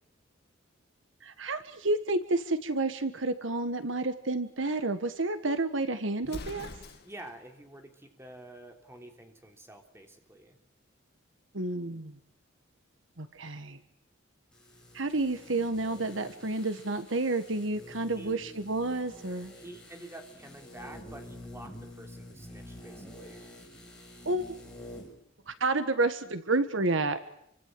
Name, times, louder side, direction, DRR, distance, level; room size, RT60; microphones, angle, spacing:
voice 1, 1.2-6.7 11.5-12.2 13.2-13.8 14.9-19.5 24.2-24.6 25.5-27.2, right 2 dB, 65° right, 10 dB, 1.6 m, -30 dB
Explosion, 6.2-7.4, left 2 dB, 50° left, 2.0 m, -43 dB
voice 2, 7.0-10.6 18.2-18.6 19.6-23.5, right 1 dB, 15° right, 3 dB, 3.5 m, -48 dB
sound 1, 14.5-25.2 25.5-25.6, left 1 dB, 5° left, 6.9 m, -48 dB
28.0 x 25.0 x 7.7 m, 0.73 s
head